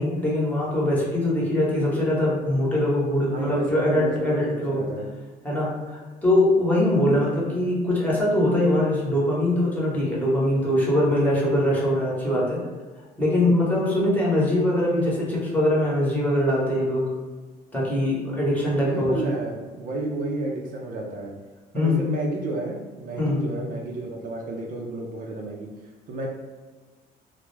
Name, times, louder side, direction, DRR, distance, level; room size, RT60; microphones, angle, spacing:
voice 1, 0.0-4.9 5.4-12.6 13.2-17.1 17.7-19.3 21.7-22.1 23.2-23.5, left 1 dB, 10° left, -6 dB, 0.9 m, -22 dB
voice 2, 3.3-5.1 18.8-21.3 21.7-25.7 26.1-26.3, right 2 dB, 55° right, 0 dB, 0.4 m, -31 dB
2.3 x 2.0 x 3.1 m, 1.4 s
cardioid pair, 110°, 17 cm